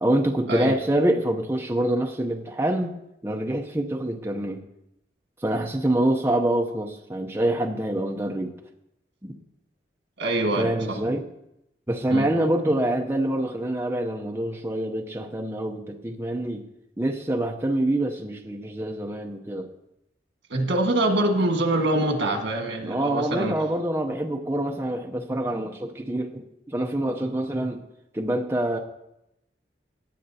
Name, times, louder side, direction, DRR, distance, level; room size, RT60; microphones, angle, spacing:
voice 1, 0.0-3.0 3.2-4.6 5.4-8.6 9.2-9.3 10.6-11.2 11.9-16.6 17.0-19.7 22.8-27.8 28.1-28.8, right 1 dB, 15° right, 3 dB, 0.6 m, -26 dB
voice 2, 10.2-11.0 12.1-12.3 20.5-23.6, right 1 dB, 85° right, 3 dB, 1.6 m, -24 dB
17.5 x 7.8 x 2.8 m, 0.84 s
head